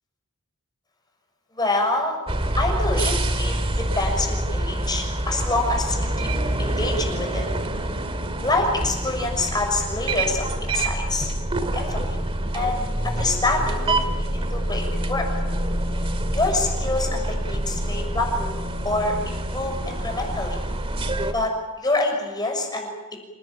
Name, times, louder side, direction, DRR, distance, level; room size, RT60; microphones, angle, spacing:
voice 1, 1.6-2.2 2.6-3.5 4.0-6.3 6.6-7.5 8.4-11.3 11.7-12.2 12.5-15.2 16.3-18.6 18.8-20.6 21.3-21.5 21.8-23.2, left 2 dB, 20° left, 2 dB, 6.5 m, -26 dB
sound 1, 2.3-21.3, right 1 dB, 25° right, 2.1 m, -26 dB
27.5 x 19.5 x 9.1 m, 1.1 s
head